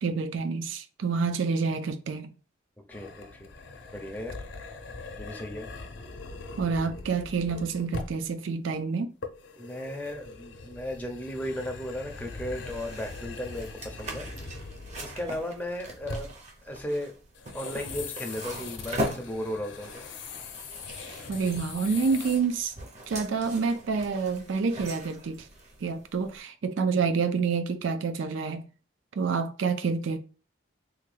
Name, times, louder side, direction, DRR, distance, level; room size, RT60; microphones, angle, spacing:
voice 1, 0.0-2.3 6.6-9.1 21.3-22.7 23.1-25.5 25.8-28.7 29.2-30.2, right 5 dB, 80° right, 0.4 m, -28 dB
sound 1, 2.9-8.3 9.2-15.5 15.9-16.5 17.3-22.4, left 4 dB, 70° left, 0.6 m, -41 dB
voice 2, 2.9-3.5 3.9-4.4 5.2-5.7 9.6-14.6 15.0-16.3 16.6-17.1 17.5-20.1, left 1 dB, 10° left, 0.5 m, -35 dB
sound 2, 12.1-26.4, equal, 35° right, 0.6 m, -41 dB
3.4 x 2.2 x 3.2 m
head